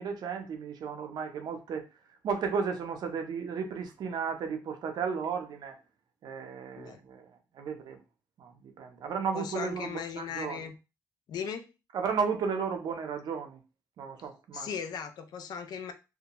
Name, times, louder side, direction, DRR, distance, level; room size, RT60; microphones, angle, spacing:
voice 1, 0.0-1.8 2.2-5.8 6.2-8.0 8.4-10.7 11.9-13.6 14.0-14.7, right 6 dB, 75° right, 0.6 m, -34 dB
voice 2, 9.3-10.7 11.3-11.6 14.5-15.9, left 7 dB, 70° left, 0.4 m, -37 dB
2.3 x 2.2 x 2.9 m
cardioid pair, 85°, 7 cm